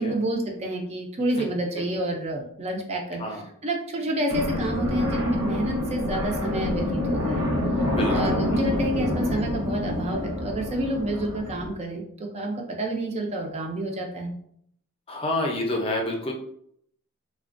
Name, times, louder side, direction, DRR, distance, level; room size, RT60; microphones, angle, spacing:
voice 1, 0.0-7.4 8.1-14.4, right 1 dB, 30° right, 2 dB, 0.4 m, -29 dB
sound 1, 4.3-11.7, left 1 dB, 70° right, 0.9 m, -27 dB
voice 2, 7.8-8.6 15.1-16.3, left 1 dB, 25° left, 1 dB, 0.5 m, -29 dB
3.3 x 2.1 x 2.5 m, 0.68 s
head